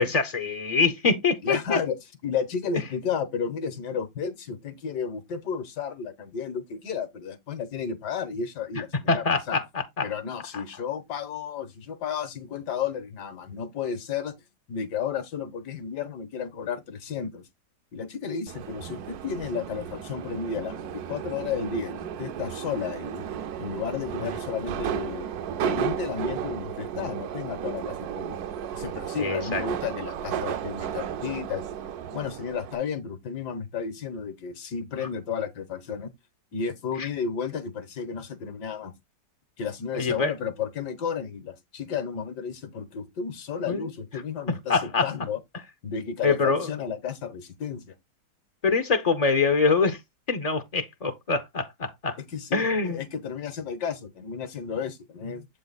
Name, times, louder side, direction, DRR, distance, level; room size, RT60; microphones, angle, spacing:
voice 1, 0.0-1.8 9.1-10.1 29.2-29.6 37.0-37.1 39.9-40.3 43.7-43.8 44.7-45.1 46.2-46.7 48.6-50.0 50.3-52.2 52.5-53.0, left 4 dB, 50° left, 0.4 m, -24 dB
voice 2, 1.4-1.9 2.2-9.6 10.0-14.4 14.7-17.4 17.9-23.2 23.6-25.3 25.6-28.4 28.7-31.6 32.1-36.1 36.5-38.9 39.6-45.4 45.8-47.9 52.3-55.5, left 6 dB, 75° left, 1.6 m, -32 dB
Subway metro underground, 18.5-32.8, right 9 dB, 70° right, 1.0 m, -34 dB
7.7 x 3.9 x 4.0 m
omnidirectional pair, 1.9 m